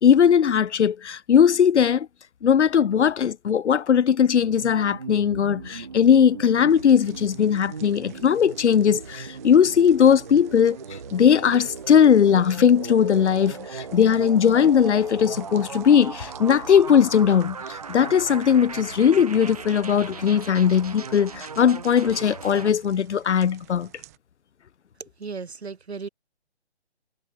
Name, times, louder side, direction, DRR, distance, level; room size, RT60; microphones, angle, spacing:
voice 1, 0.0-2.1 2.4-10.8 11.1-23.9, left 8 dB, 80° left, 0.6 m, -19 dB
sound 1, 4.4-22.7, right 5 dB, 35° right, 0.9 m, -38 dB
sound 2, 6.7-24.2, right 16 dB, 15° right, 1.9 m, -52 dB
voice 2, 25.0-26.1, right 5 dB, 65° right, 2.4 m, -36 dB
hypercardioid pair, 170°, 34 cm